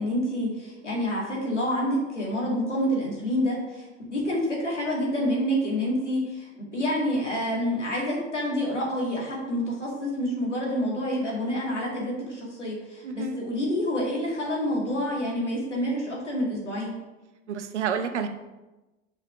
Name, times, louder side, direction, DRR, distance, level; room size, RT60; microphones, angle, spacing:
voice 1, 0.0-16.9, equal, 90° left, -4 dB, 2.3 m, -28 dB
voice 2, 13.0-13.4 17.5-18.3, right 6 dB, 80° right, 8 dB, 0.8 m, -29 dB
6.7 x 5.8 x 5.0 m, 1.1 s
figure-of-eight pair, 65°, 35 cm